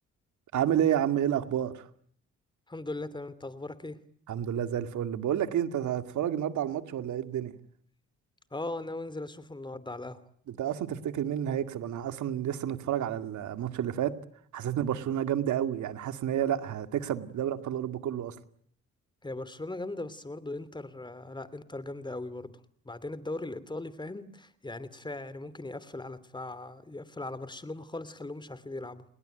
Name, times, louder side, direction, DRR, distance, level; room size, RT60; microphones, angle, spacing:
voice 1, 0.5-1.9 4.3-7.5 10.5-14.2 14.5-18.3, right 10 dB, 70° right, 2.3 m, -30 dB
voice 2, 2.7-4.0 8.5-10.2 19.2-22.5 22.8-29.0, left 2 dB, 15° left, 2.8 m, -39 dB
30.0 x 21.0 x 9.2 m
cardioid pair, 90°, 30 cm